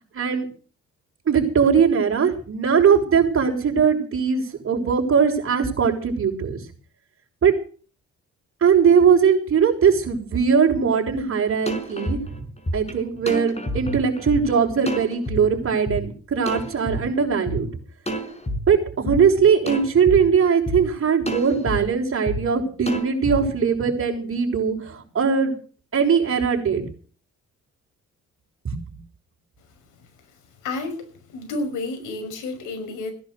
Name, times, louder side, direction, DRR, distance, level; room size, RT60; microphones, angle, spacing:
voice 1, 0.1-0.5 1.3-6.6 7.4-7.5 8.6-12.4 12.7-17.7 18.7-25.5 25.9-26.8 28.6-28.9, right 6 dB, 45° right, 0 dB, 6.2 m, -20 dB
sound 1, 11.2-11.3 11.7-15.4 15.9-16.0 16.5-17.6 18.1-18.6 19.1-19.2 19.7-20.2 20.7-20.8 21.3-21.8 22.3-22.4 22.9-23.4, equal, 20° left, 5.9 m, -28 dB
voice 2, 30.6-31.0 31.3-33.1, left 2 dB, 85° left, 6 dB, 6.0 m, -30 dB
17.5 x 11.0 x 6.8 m, 0.41 s
cardioid pair, 90°, 30 cm